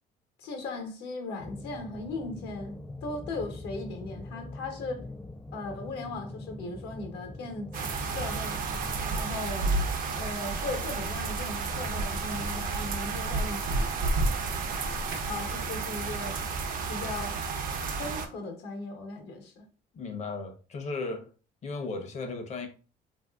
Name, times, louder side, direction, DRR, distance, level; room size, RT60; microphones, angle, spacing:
voice 1, 0.4-5.1 5.5-8.6 9.1-9.7 10.2-13.9 15.3-16.4 16.9-17.4 18.0-19.7, left 2 dB, 75° left, 0.9 m, -38 dB
sound 1, 1.4-9.4, left 2 dB, 10° left, 0.3 m, -43 dB
sound 2, 7.7-18.3, right 5 dB, 55° right, 0.5 m, -33 dB
sound 3, 8.7-15.3, right 1 dB, 85° right, 0.8 m, -33 dB
voice 2, 19.9-21.3 21.6-22.7, left 3 dB, 45° left, 0.7 m, -35 dB
3.1 x 2.6 x 2.2 m
cardioid pair, 110°, 17 cm